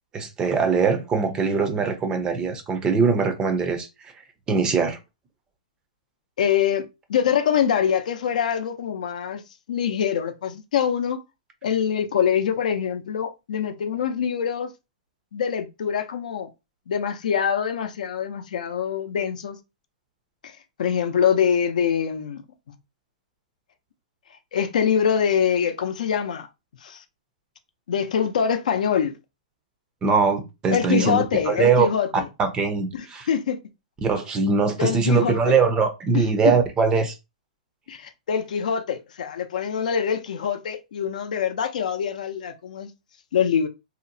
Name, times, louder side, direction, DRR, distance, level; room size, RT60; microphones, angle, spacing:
voice 1, 0.1-4.1 4.5-5.0 30.0-31.9 32.4-33.3 34.0-37.1, right 5 dB, 20° right, 0.5 m, -22 dB
voice 2, 6.4-6.8 7.1-9.4 9.7-11.2 11.6-14.7 15.3-16.5 16.9-19.6 20.8-22.4 24.5-26.5 26.8-27.0 27.9-29.1 30.7-32.3 32.9-33.6 34.8-35.5 36.1-36.5 37.9-42.9 43.3-43.7, left 8 dB, 70° left, 0.5 m, -24 dB
2.8 x 2.0 x 2.6 m
hypercardioid pair, 140°, 4 cm